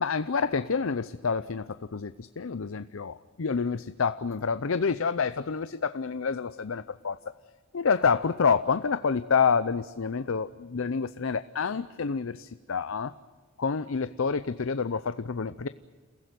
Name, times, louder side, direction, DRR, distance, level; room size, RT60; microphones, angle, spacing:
voice 1, 0.0-7.2 7.7-13.1 13.6-15.7, left 5 dB, 75° left, 13 dB, 0.6 m, -28 dB
29.5 x 15.5 x 9.3 m, 1.5 s
head